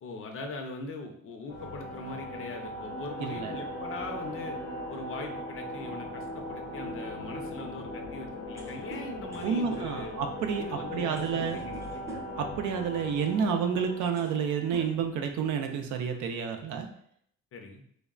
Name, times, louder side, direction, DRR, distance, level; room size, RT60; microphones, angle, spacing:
voice 1, 0.0-4.6 4.9-10.1 10.6-12.2 17.5-17.8, left 3 dB, 45° left, 3 dB, 0.5 m, -41 dB
sound 1, 1.5-15.1, equal, 90° left, 0.6 m, -39 dB
voice 2, 3.2-3.5 9.4-10.6 10.9-11.6 12.3-16.9, right 6 dB, 80° right, 5 dB, 0.5 m, -30 dB
sound 2, 8.4-12.5 13.5-13.6 14.0-14.5 14.7-15.6, equal, 10° right, 0.5 m, -46 dB
3.1 x 2.0 x 2.3 m, 0.66 s
cardioid pair, 90°, 30 cm